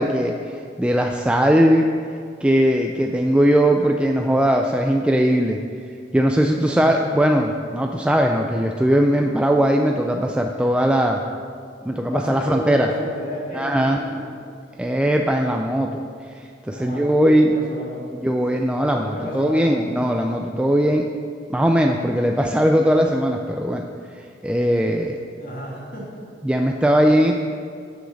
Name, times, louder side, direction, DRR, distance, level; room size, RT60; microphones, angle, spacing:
voice 1, 0.0-1.9 2.4-5.6 6.1-11.2 11.8-12.9 13.5-14.0 14.8-16.0 16.3-17.6 18.1-21.1 21.5-23.9 24.4-25.2 26.4-27.3, equal, 5° right, 2 dB, 0.3 m, -19 dB
voice 2, 6.5-7.0 12.0-14.2 16.7-18.2 18.9-19.8 25.4-26.1, equal, 50° left, -4 dB, 2.2 m, -32 dB
8.2 x 6.2 x 6.1 m, 2.3 s
head